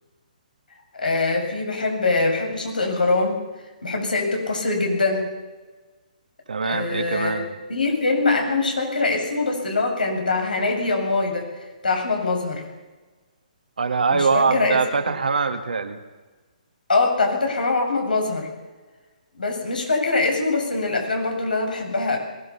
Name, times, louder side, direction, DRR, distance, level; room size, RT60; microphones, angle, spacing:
voice 1, 0.9-3.4 3.8-5.3 6.6-7.4 7.7-11.5 11.8-12.6 14.1-14.8 16.9-18.5 19.3-22.2, left 3 dB, 85° left, 2 dB, 7.6 m, -23 dB
voice 2, 6.5-7.5 13.8-16.0, right 4 dB, 80° right, 6 dB, 2.5 m, -22 dB
22.5 x 18.0 x 7.2 m, 1.3 s
hypercardioid pair, 140°, 5 cm